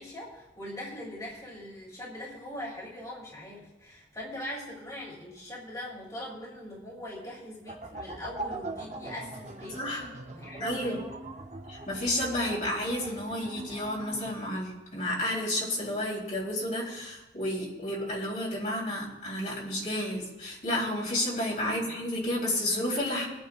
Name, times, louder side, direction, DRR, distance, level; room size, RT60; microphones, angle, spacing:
voice 1, 0.0-9.8 10.3-11.0 21.6-21.9, left 1 dB, 20° left, -6 dB, 3.2 m, -41 dB
sound 1, 7.7-14.3, right 2 dB, 40° right, 0.9 m, -42 dB
voice 2, 9.7-10.1 10.6-11.0 11.7-23.3, left 1 dB, 45° left, -4 dB, 3.8 m, -31 dB
24.5 x 9.3 x 2.5 m, 1.0 s
head